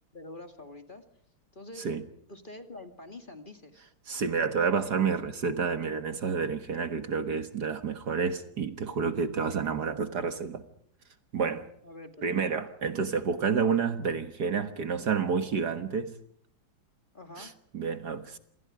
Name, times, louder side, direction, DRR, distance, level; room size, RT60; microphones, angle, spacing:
voice 1, 0.1-1.1 1.5-1.9 2.3-3.8 8.8-9.0 9.4-9.7 11.8-12.5 17.1-17.6, left 2 dB, 25° left, 2.2 m, -46 dB
voice 2, 4.1-10.6 11.3-11.7 12.2-16.1 17.4-18.4, right 5 dB, 55° right, 2.0 m, -29 dB
27.5 x 25.5 x 5.0 m
omnidirectional pair, 2.1 m